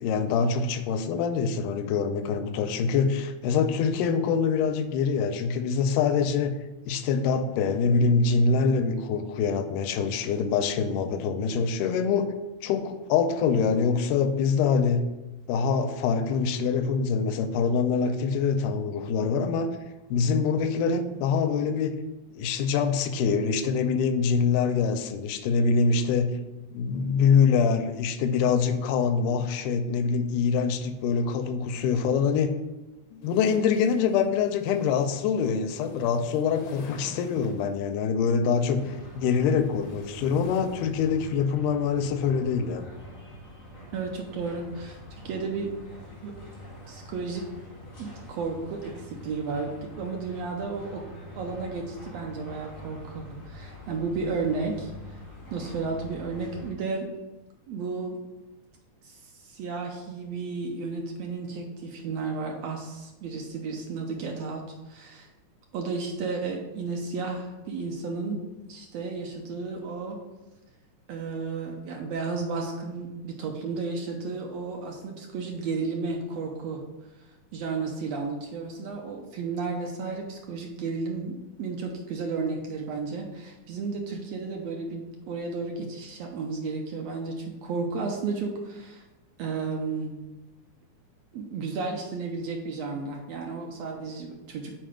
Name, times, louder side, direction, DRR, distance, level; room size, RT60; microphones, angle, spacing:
voice 1, 0.0-6.6 6.9-12.3 12.6-15.1 15.5-19.7 20.1-22.0 22.4-26.4 26.7-32.5 33.1-42.9, left 5 dB, 85° left, 8 dB, 2.1 m, -25 dB
sound 1, 33.2-37.9 38.9-41.4, left 4 dB, 70° left, 2.0 m, -48 dB
sound 2, 38.7-56.7, left 1 dB, 30° left, 1.7 m, -45 dB
voice 2, 43.9-45.0 45.2-45.7 46.2-46.3 46.9-47.5 48.0-51.0 51.3-55.2 55.5-57.1 57.7-58.2 59.0-65.3 65.7-70.2 71.1-76.8 77.5-89.0 89.4-90.1 91.3-94.7, right 4 dB, 80° right, 1 dB, 1.5 m, -33 dB
5.9 x 4.5 x 4.9 m, 1.0 s
omnidirectional pair, 3.7 m